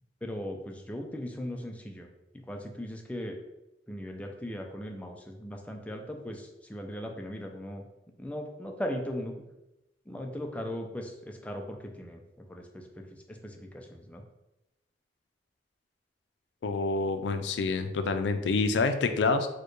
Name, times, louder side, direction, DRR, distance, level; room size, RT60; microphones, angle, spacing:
voice 1, 0.2-2.1 2.5-3.4 3.9-7.8 8.2-9.4 10.1-12.2 12.5-12.9 13.3-14.2, equal, 10° left, 2 dB, 0.4 m, -38 dB
voice 2, 16.6-19.5, left 3 dB, 80° left, 9 dB, 0.4 m, -27 dB
4.3 x 2.2 x 3.1 m, 0.95 s
head